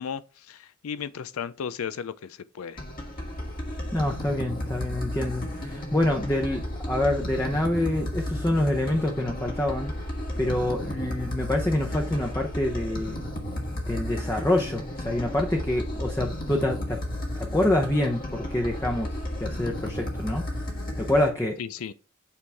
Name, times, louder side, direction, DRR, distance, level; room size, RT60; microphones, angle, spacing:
voice 1, 0.0-2.8 21.6-21.9, left 7 dB, 85° left, 0.4 m, -35 dB
sound 1, 2.8-21.3, left 1 dB, 40° left, 1.5 m, -33 dB
voice 2, 3.9-9.9 10.4-13.2 13.9-17.0 17.4-20.4 21.0-21.6, left 1 dB, 15° left, 0.7 m, -26 dB
8.6 x 4.7 x 3.4 m
head